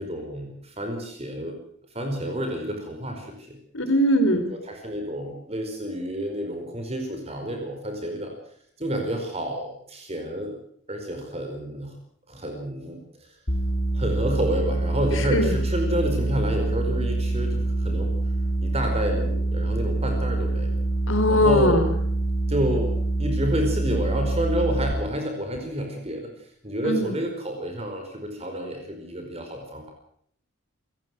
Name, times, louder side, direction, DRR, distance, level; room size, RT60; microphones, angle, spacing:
voice 1, 0.0-1.6 1.9-3.6 4.3-8.4 8.8-10.6 10.9-12.0 12.3-13.3 13.9-18.2 18.6-20.8 21.3-21.8 22.5-22.9 23.2-29.9, equal, 30° right, 4 dB, 4.9 m, -29 dB
voice 2, 3.7-4.5 15.3-15.5 21.1-21.8 26.8-27.1, left 1 dB, 70° left, 8 dB, 4.4 m, -20 dB
sound 1, 13.5-24.9, right 2 dB, 45° left, 3.0 m, -25 dB
28.0 x 17.0 x 6.2 m, 0.65 s
head